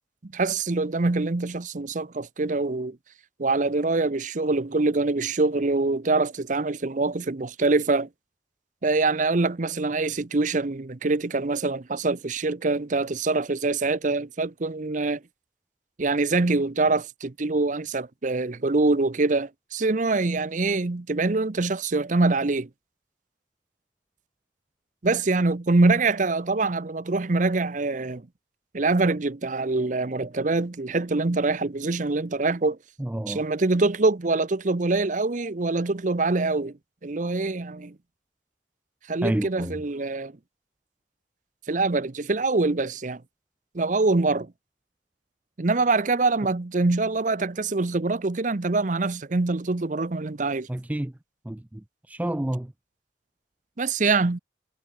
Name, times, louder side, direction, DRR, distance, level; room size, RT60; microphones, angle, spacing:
voice 1, 0.2-3.0 3.4-8.1 8.8-15.2 16.0-22.7 25.0-28.3 28.7-32.8 33.3-38.0 39.1-40.3 41.7-43.2 43.7-44.5 45.6-50.7 53.8-54.4, right 3 dB, 40° right, 0.7 m, -24 dB
voice 2, 33.0-33.4 39.2-39.8 50.7-51.1 51.5-52.7, right 1 dB, 10° right, 0.3 m, -29 dB
head